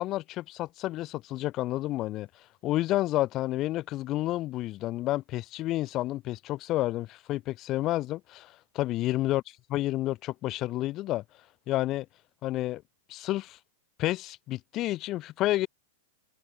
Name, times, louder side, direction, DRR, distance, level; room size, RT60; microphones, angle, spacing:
voice 1, 0.0-2.3 2.6-8.5 8.8-11.2 11.7-12.1 12.4-12.8 13.1-13.6 14.0-15.7, left 16 dB, 40° left, 1.3 m, -30 dB
hypercardioid pair, 110°, 0 cm